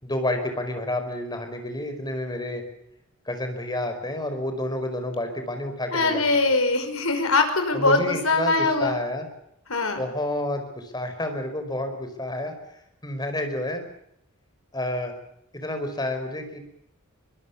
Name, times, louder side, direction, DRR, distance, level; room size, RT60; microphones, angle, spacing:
voice 1, 0.0-2.6 3.2-6.4 7.7-9.3 10.0-12.5 13.0-13.8 14.7-15.1 15.5-16.6, left 1 dB, 20° left, 7 dB, 4.9 m, -29 dB
voice 2, 5.9-8.9 9.7-10.0, left 3 dB, 70° left, 6 dB, 5.5 m, -22 dB
23.5 x 22.5 x 7.1 m, 0.76 s
head